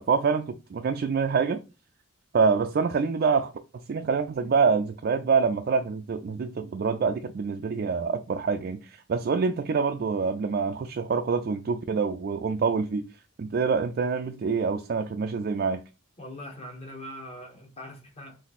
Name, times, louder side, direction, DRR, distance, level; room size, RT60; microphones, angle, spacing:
voice 1, 0.0-1.6 2.3-13.1 13.4-15.8, right 5 dB, 45° right, 0.3 m, -26 dB
voice 2, 16.2-18.4, left 1 dB, 30° left, 1.0 m, -41 dB
4.1 x 2.6 x 4.1 m
head